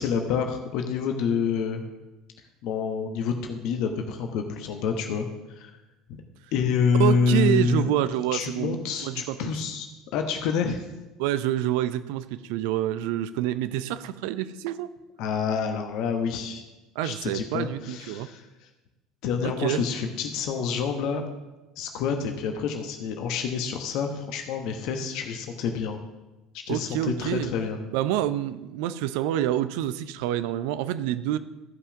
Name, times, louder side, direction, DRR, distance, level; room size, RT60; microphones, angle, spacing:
voice 1, 0.0-1.8 2.6-5.3 5.5-5.7 6.1-6.2 6.5-7.9 8.3-9.9 10.1-10.8 15.2-16.6 17.0-18.4 19.2-21.2 21.8-26.0 26.5-27.8, left 6 dB, 60° left, 5 dB, 1.1 m, -27 dB
voice 2, 7.0-9.5 11.2-14.9 17.0-18.3 19.4-19.8 26.7-27.5 27.9-31.4, right 12 dB, 65° right, 14 dB, 0.5 m, -27 dB
14.5 x 5.6 x 6.1 m, 1.1 s
figure-of-eight pair, 65°, 0 cm